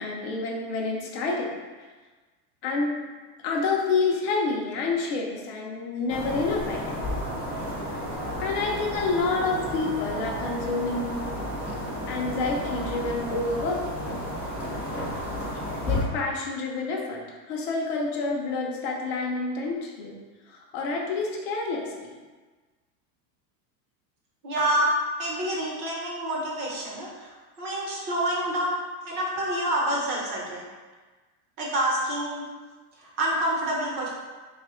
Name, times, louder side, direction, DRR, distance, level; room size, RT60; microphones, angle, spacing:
voice 1, 0.0-1.6 2.6-3.0 3.4-7.0 7.9-8.0 8.4-11.3 11.7-11.8 12.1-13.8 15.9-20.1 20.5-22.1, left 3 dB, 35° left, -1 dB, 0.5 m, -28 dB
sound 1, 6.1-16.0, left 1 dB, 5° right, 0.7 m, -32 dB
voice 2, 24.4-24.9 25.2-28.8 29.0-30.7 31.6-32.4 33.0-34.1, right 1 dB, 40° right, -3 dB, 1.0 m, -27 dB
3.3 x 2.4 x 4.2 m, 1.3 s
supercardioid pair, 160°, 49 cm